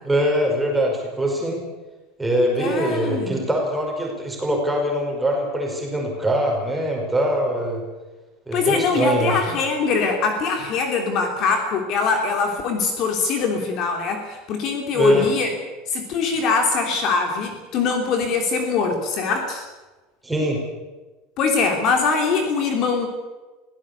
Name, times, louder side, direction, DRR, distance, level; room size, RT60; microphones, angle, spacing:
voice 1, 0.1-1.6 2.2-7.8 8.5-9.3 14.9-15.3 20.2-20.6, right 1 dB, 5° right, 0 dB, 5.4 m, -22 dB
voice 2, 2.6-3.4 8.5-15.5 15.9-19.6 21.4-23.1, left 4 dB, 35° left, 4 dB, 3.1 m, -22 dB
23.5 x 17.0 x 8.5 m, 1.2 s
supercardioid pair, 175°, 0 cm